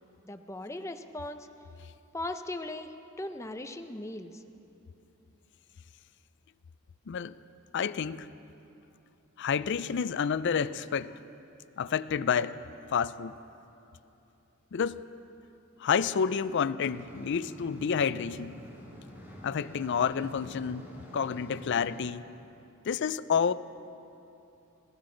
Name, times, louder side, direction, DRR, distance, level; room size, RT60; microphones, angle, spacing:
voice 1, 0.2-1.5 2.1-4.4, left 1 dB, 15° left, 0.6 m, -38 dB
voice 2, 7.7-8.3 9.4-11.2 11.8-12.6 12.9-13.4 14.7-15.0 15.8-18.6 19.4-20.8 21.1-22.3 22.9-23.5, left 6 dB, 55° left, 0.4 m, -29 dB
sound 1, 16.8-22.0, equal, 10° right, 2.5 m, -48 dB
21.5 x 16.5 x 3.9 m
head